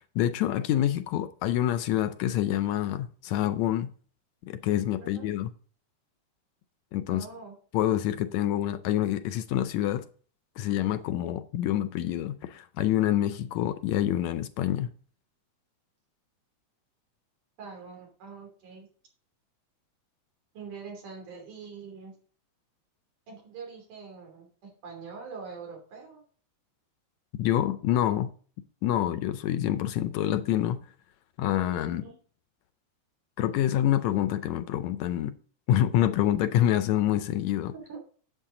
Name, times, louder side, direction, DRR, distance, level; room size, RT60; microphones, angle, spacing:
voice 1, 0.2-3.9 4.4-5.5 6.9-7.3 7.7-10.1 10.6-14.9 27.4-28.3 28.8-30.8 31.4-32.0 33.4-35.3 35.7-37.7, left 12 dB, 75° left, 1.8 m, -26 dB
voice 2, 7.1-7.6 17.6-18.9 20.5-22.1 23.3-26.2 31.8-32.1 37.9-38.0, right 5 dB, 85° right, 4.6 m, -44 dB
10.0 x 8.1 x 3.8 m
omnidirectional pair, 3.5 m